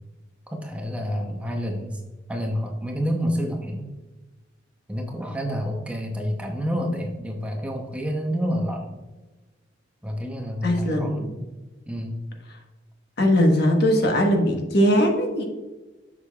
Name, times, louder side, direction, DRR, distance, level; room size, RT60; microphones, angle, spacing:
voice 1, 0.5-2.0 2.3-3.9 4.9-8.9 10.0-11.3 11.9-12.2, equal, 5° right, 2 dB, 0.7 m, -28 dB
voice 2, 10.6-11.4 13.2-15.4, equal, 60° left, 2 dB, 1.3 m, -20 dB
7.3 x 6.5 x 2.4 m, 1.2 s
head